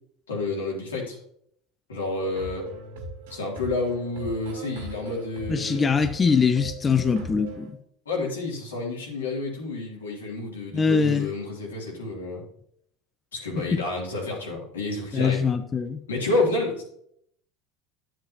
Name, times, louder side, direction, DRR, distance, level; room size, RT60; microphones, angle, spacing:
voice 1, 0.3-1.2 1.9-2.7 3.3-5.8 8.0-12.4 13.3-15.5 16.1-16.8, left 2 dB, 90° left, -3 dB, 2.9 m, -29 dB
sound 1, 2.2-7.7, right 2 dB, 80° right, 1.9 m, -39 dB
voice 2, 5.5-7.8 10.7-11.3 13.7-13.8 15.1-16.0, left 5 dB, 25° left, 9 dB, 0.6 m, -22 dB
10.0 x 7.6 x 2.9 m, 0.70 s
hypercardioid pair, 80°, 0 cm